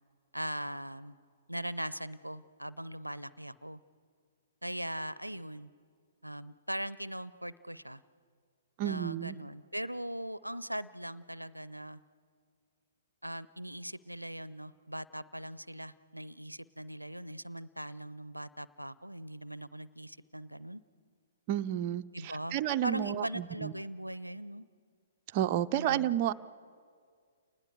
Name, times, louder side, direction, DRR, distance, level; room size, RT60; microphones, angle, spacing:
voice 1, 0.3-1.2 1.5-3.8 4.6-5.7 6.2-8.0 8.8-12.0 13.2-20.8 22.1-24.7 25.7-26.1, right 1 dB, 90° right, 19 dB, 0.6 m, -40 dB
voice 2, 8.8-9.4 21.5-23.7 25.3-26.3, right 11 dB, 35° right, 8 dB, 0.5 m, -31 dB
30.0 x 19.5 x 6.8 m, 2.1 s
figure-of-eight pair, 115°, 0 cm